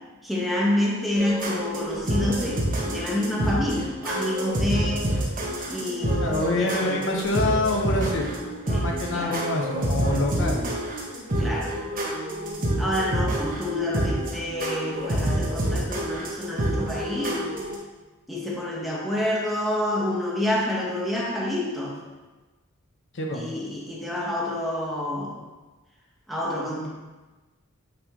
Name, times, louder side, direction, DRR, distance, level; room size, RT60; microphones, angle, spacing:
voice 1, 0.2-5.2 5.7-7.0 8.7-8.8 9.1-9.4 11.4-11.8 12.8-17.5 18.3-22.0 23.3-25.4 26.3-26.9, left 1 dB, ahead, -5 dB, 1.1 m, -28 dB
sound 1, 1.2-17.7, right 1 dB, 40° right, 1.1 m, -27 dB
voice 2, 6.2-8.3 8.7-10.7 23.1-23.4, left 2 dB, 60° left, 1 dB, 0.8 m, -26 dB
8.6 x 3.4 x 3.6 m, 1.2 s
head